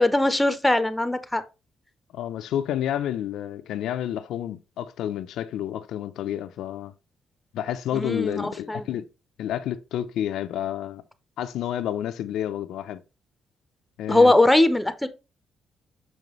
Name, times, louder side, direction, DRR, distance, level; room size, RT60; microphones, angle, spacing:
voice 1, 0.0-1.4 7.9-8.8 14.1-15.1, left 2 dB, 10° left, 0.8 m, -20 dB
voice 2, 2.1-6.9 7.5-9.0 9.4-11.0 11.4-13.0 14.0-14.3, left 11 dB, 80° left, 0.5 m, -30 dB
6.3 x 5.3 x 3.1 m
cardioid pair, 90°, 0 cm